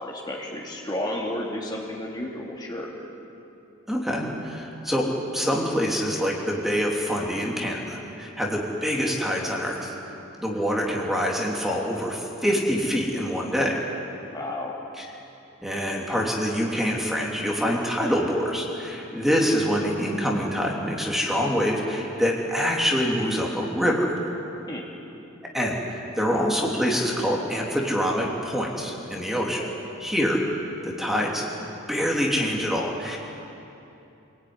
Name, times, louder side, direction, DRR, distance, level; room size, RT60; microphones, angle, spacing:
voice 1, 0.0-2.9 14.2-14.7 24.7-24.8 29.6-29.7, left 1 dB, 20° left, -3 dB, 2.8 m, -32 dB
voice 2, 3.9-9.9 10.4-13.8 15.0-15.1 15.6-24.2 25.5-29.6 30.0-30.4 30.8-33.2, equal, ahead, -2 dB, 3.1 m, -25 dB
26.5 x 18.5 x 9.7 m, 2.9 s
head